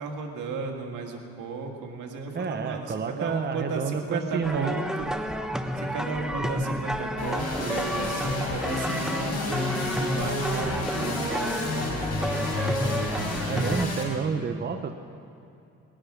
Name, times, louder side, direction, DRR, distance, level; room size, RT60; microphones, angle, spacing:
voice 1, 0.0-5.1 5.8-13.3, right 4 dB, 80° right, 2 dB, 1.9 m, -34 dB
voice 2, 2.3-4.7 13.5-14.9, right 6 dB, 35° right, 7 dB, 0.9 m, -29 dB
sound 1, 4.4-13.9, equal, ahead, 0.9 m, -31 dB
sound 2, 7.2-14.0, left 2 dB, 55° left, 4.8 m, -30 dB
19.5 x 10.0 x 6.2 m, 2.6 s
cardioid pair, 90°, 30 cm